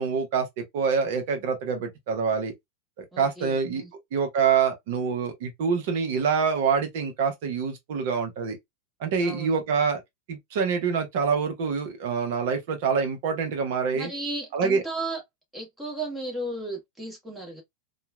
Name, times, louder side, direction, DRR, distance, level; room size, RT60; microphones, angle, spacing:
voice 1, 0.0-2.5 3.0-3.8 4.1-8.6 9.0-10.0 10.3-14.1 14.5-14.8, right 6 dB, 50° right, 0.8 m, -26 dB
voice 2, 3.1-3.9 9.2-9.6 13.9-15.2 15.5-17.6, right 2 dB, 10° right, 1.1 m, -35 dB
2.9 x 2.3 x 2.2 m
figure-of-eight pair, 90°, 0 cm